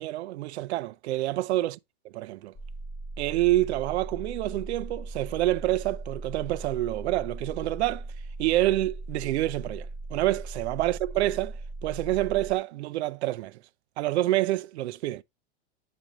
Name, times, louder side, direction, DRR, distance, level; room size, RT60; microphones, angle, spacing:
voice 1, 0.0-1.8 2.0-2.5 3.2-8.0 8.4-13.6 14.0-15.2, right 16 dB, 75° right, 0.5 m, -27 dB
sound 1, 2.5-12.6, right 2 dB, 20° left, 1.0 m, -39 dB
7.4 x 5.2 x 3.0 m
supercardioid pair, 145°, 34 cm